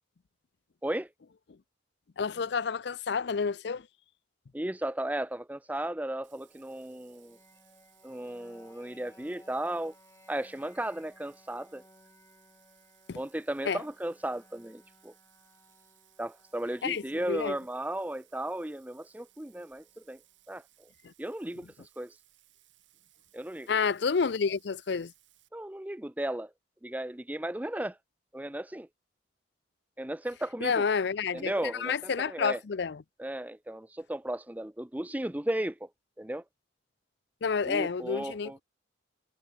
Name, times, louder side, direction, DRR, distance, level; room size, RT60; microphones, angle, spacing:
voice 1, 2.2-3.9 13.1-13.2 13.6-13.8 16.8-17.6 21.0-21.1 23.7-25.1 30.6-33.0 37.4-38.6, left 5 dB, 60° left, 0.5 m, -30 dB
voice 2, 4.5-7.4 8.0-9.9 10.3-11.8 13.1-15.1 16.2-20.2 20.5-20.9 21.2-22.2 23.3-23.7 25.5-26.5 26.8-28.0 28.3-28.9 30.0-30.8 31.3-32.6 33.2-35.9 36.2-36.4 37.6-38.6, right 1 dB, 10° right, 0.5 m, -35 dB
sound 1, 6.2-20.2, left 1 dB, 15° left, 2.4 m, -62 dB
Bathtub (filling or washing), 6.2-25.5, right 15 dB, 75° right, 3.8 m, -65 dB
head